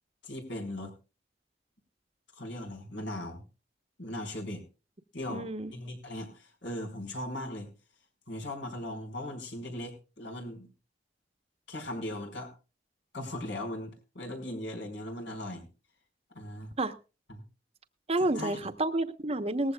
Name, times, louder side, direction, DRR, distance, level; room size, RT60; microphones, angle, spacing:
voice 1, 0.2-0.9 2.3-3.4 4.0-4.6 5.1-7.7 8.3-10.7 11.7-12.5 13.1-15.7 16.3-16.7 17.3-17.4 18.2-18.6, left 1 dB, 85° left, 4.9 m, -38 dB
voice 2, 5.3-5.7 16.8-16.9 18.1-19.7, right 2 dB, 35° right, 1.0 m, -30 dB
19.0 x 15.0 x 2.3 m
head